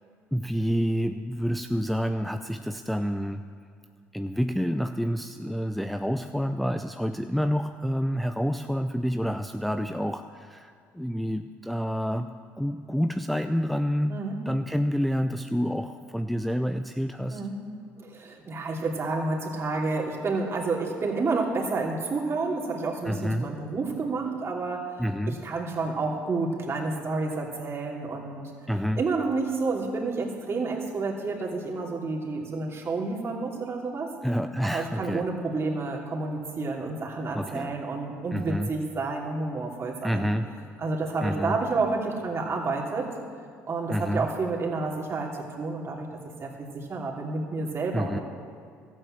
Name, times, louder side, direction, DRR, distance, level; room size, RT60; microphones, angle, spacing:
voice 1, 0.3-3.4 4.1-12.3 12.6-17.4 23.0-23.5 25.0-25.4 28.7-29.0 34.2-35.2 37.3-37.7 38.3-38.7 40.0-40.5 41.2-41.6 43.9-44.3 47.9-48.2, equal, ahead, 7 dB, 0.5 m, -28 dB
voice 2, 18.0-24.9 25.3-28.5 29.0-34.1 34.7-40.3 40.8-43.1 43.7-46.1 46.4-48.2, right 3 dB, 35° right, -2 dB, 2.9 m, -30 dB
13.0 x 8.7 x 7.7 m, 2.3 s
hypercardioid pair, 60°, 7 cm